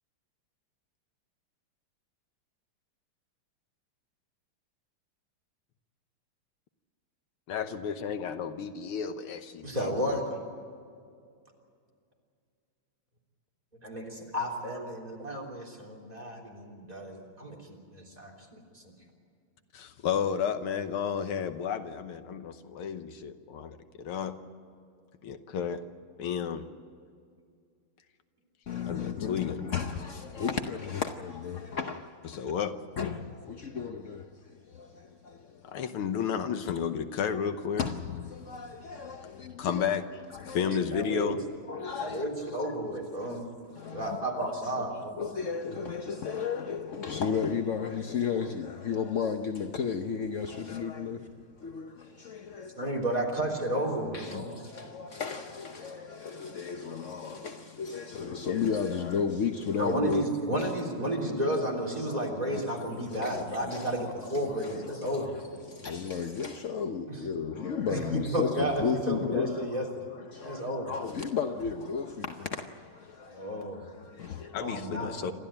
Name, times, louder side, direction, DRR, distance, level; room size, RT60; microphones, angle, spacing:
voice 1, 7.5-9.9 19.7-24.4 25.2-25.8 26.2-26.7 28.9-29.6 32.3-32.8 35.7-37.9 39.6-40.1 40.5-41.4 74.5-75.3, left 7 dB, 80° left, 1.9 m, -32 dB
voice 2, 9.6-10.3 13.8-18.9 40.6-41.4 42.0-43.5 43.9-45.1 52.8-54.6 59.8-65.4 67.1-67.2 67.9-69.9 70.4-70.9 73.3-73.9 74.6-75.3, right 1 dB, 15° right, 3.6 m, -32 dB
voice 3, 28.7-32.5 33.0-35.9 37.8-39.9 40.3-40.7 41.7-42.7 43.3-43.4 43.7-44.2 45.2-51.3 51.6-53.0 54.1-60.3 60.6-60.7 62.0-69.8 70.1-75.1, left 6 dB, 65° left, 0.7 m, -34 dB
28.5 x 13.0 x 8.9 m
omnidirectional pair, 2.4 m